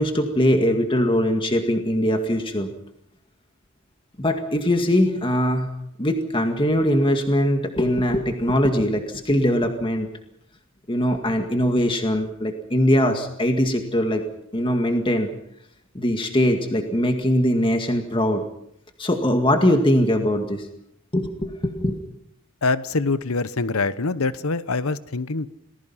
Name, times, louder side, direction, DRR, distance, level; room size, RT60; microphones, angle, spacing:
voice 1, 0.0-2.7 4.2-5.7 6.0-10.1 10.9-14.2 14.5-15.3 15.9-18.4 19.0-20.7 21.1-22.1, equal, 25° left, 5 dB, 2.0 m, -21 dB
voice 2, 22.6-25.5, left 3 dB, 80° left, 15 dB, 1.0 m, -24 dB
28.0 x 19.5 x 5.7 m, 0.73 s
head